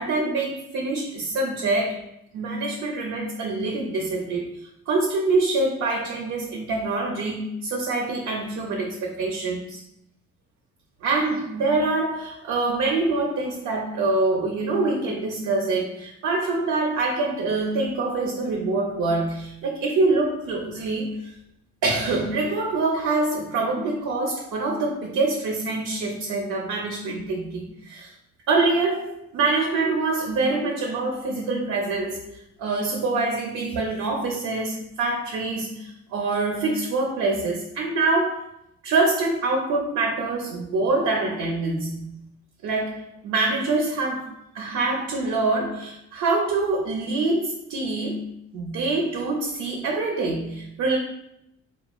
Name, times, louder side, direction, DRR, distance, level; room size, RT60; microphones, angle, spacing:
voice 1, 0.0-2.0 2.3-9.8 11.0-21.3 21.8-28.1 28.5-38.5 38.8-42.2 42.6-51.0, right 3 dB, 70° right, 0 dB, 0.5 m, -25 dB
3.0 x 2.2 x 2.2 m, 0.80 s
cardioid pair, 90°, 30 cm